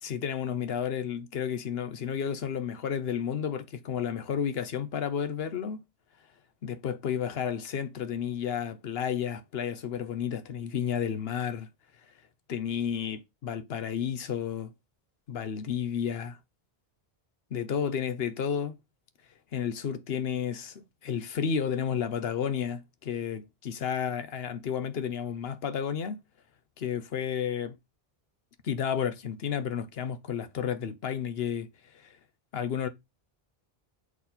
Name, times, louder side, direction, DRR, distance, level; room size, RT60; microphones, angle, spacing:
voice 1, 0.0-5.8 6.6-11.7 12.5-14.7 15.3-16.4 17.5-18.8 19.5-26.2 26.8-27.8 28.6-31.7 31.9-32.2 32.5-32.9, left 8 dB, 75° left, 1.0 m, -32 dB
7.1 x 4.2 x 4.2 m
omnidirectional pair, 1.0 m